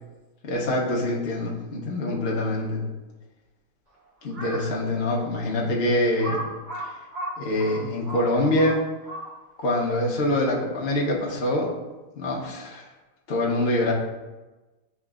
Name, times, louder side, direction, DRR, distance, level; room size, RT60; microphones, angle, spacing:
voice 1, 0.4-2.8 4.2-6.4 6.8-6.9 7.4-8.8 9.6-11.7 12.1-12.8 13.3-13.9, left 1 dB, 50° left, -2 dB, 0.8 m, -25 dB
Crow, 4.2-4.7 5.3-5.4 6.2-9.6, right 1 dB, 35° right, 1.7 m, -35 dB
7.2 x 2.9 x 2.4 m, 1.2 s
omnidirectional pair, 1.9 m